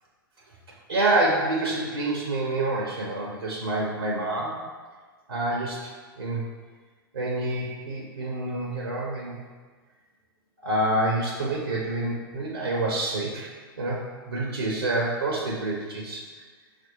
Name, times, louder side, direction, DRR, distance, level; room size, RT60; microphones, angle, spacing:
voice 1, 0.9-4.6 5.3-5.9 6.2-6.4 7.1-9.4 10.6-13.5 13.8-14.0 14.3-16.2, right 2 dB, 80° right, -3 dB, 0.6 m, -27 dB
5.8 x 2.5 x 2.8 m, 1.5 s
figure-of-eight pair, 95°, 12 cm